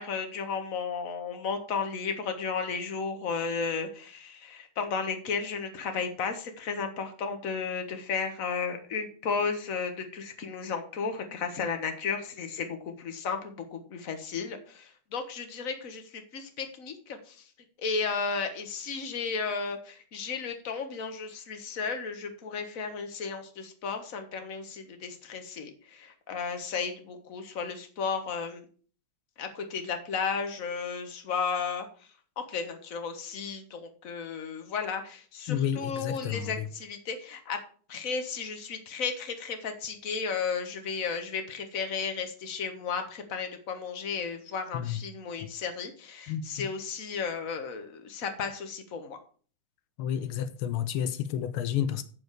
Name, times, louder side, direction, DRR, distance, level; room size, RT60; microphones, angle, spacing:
voice 1, 0.0-17.4 17.8-28.6 29.4-31.9 32.5-37.6 37.9-49.2, left 5 dB, 45° left, 1.7 m, -34 dB
voice 2, 35.5-36.7 44.7-45.0 46.3-46.7 50.0-52.0, left 9 dB, 90° left, 1.6 m, -31 dB
7.9 x 7.1 x 6.5 m
omnidirectional pair, 2.3 m